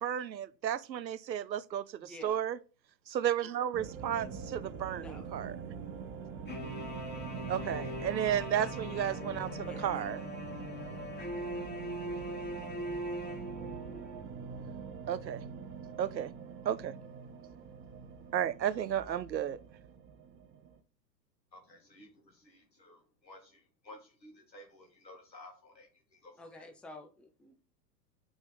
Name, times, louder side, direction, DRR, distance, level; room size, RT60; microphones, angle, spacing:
voice 1, 0.0-2.6 3.1-5.6 7.5-10.2 13.9-14.1 15.1-15.4 16.0-16.3 16.7-16.9 18.3-19.6, right 10 dB, 90° right, 0.6 m, -33 dB
voice 2, 2.0-2.4 4.9-5.2 9.6-9.8 26.4-27.6, left 2 dB, ahead, 0.5 m, -50 dB
sound 1, 3.7-20.8, right 6 dB, 25° right, 0.8 m, -44 dB
sound 2, 6.5-14.2, left 1 dB, 20° left, 1.9 m, -41 dB
voice 3, 21.5-26.7, left 1 dB, 90° left, 2.6 m, -55 dB
5.3 x 4.9 x 3.7 m
figure-of-eight pair, 100°, 50 cm